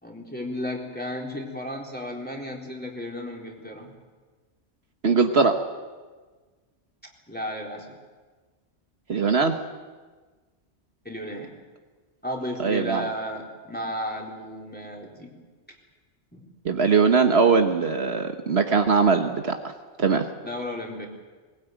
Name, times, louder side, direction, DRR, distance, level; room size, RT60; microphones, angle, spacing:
voice 1, 0.0-3.9 7.3-8.0 11.0-11.5 12.2-15.3 16.3-16.5 20.4-21.1, equal, 10° left, -1 dB, 3.9 m, -34 dB
voice 2, 5.0-5.6 9.1-9.5 12.6-13.1 16.6-19.5 20.0-20.2, right 5 dB, 65° right, 5 dB, 1.5 m, -20 dB
21.5 x 20.5 x 9.2 m, 1.4 s
omnidirectional pair, 1.2 m